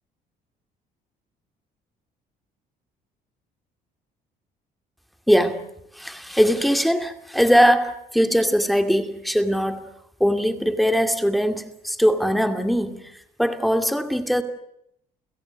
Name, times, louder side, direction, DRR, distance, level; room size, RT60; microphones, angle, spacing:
voice 1, 5.3-5.7 6.0-9.9 10.2-13.1 13.4-14.4, equal, ahead, 2.4 m, -21 dB
29.5 x 17.0 x 9.2 m
cardioid pair, 110°, 17 cm